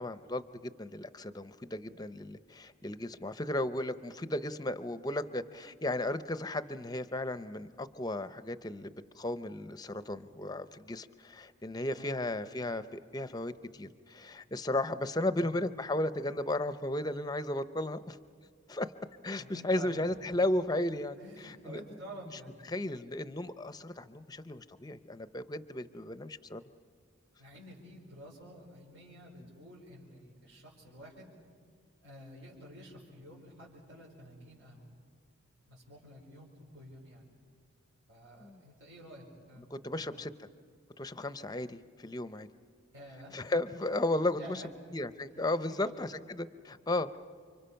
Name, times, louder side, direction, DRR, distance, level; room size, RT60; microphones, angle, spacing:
voice 1, 0.0-18.2 18.7-18.9 19.2-21.8 22.3-22.4 22.7-26.6 38.4-38.6 39.7-40.5 41.0-42.5 43.3-44.6 44.9-47.2, left 1 dB, 20° left, 12 dB, 0.6 m, -35 dB
voice 2, 19.4-20.2 21.2-22.9 27.4-31.3 32.0-34.9 35.7-37.3 38.1-40.2 42.9-43.3 44.4-44.7 45.3-46.0, equal, 75° right, -5 dB, 5.3 m, -50 dB
29.5 x 25.5 x 5.7 m, 2.1 s
head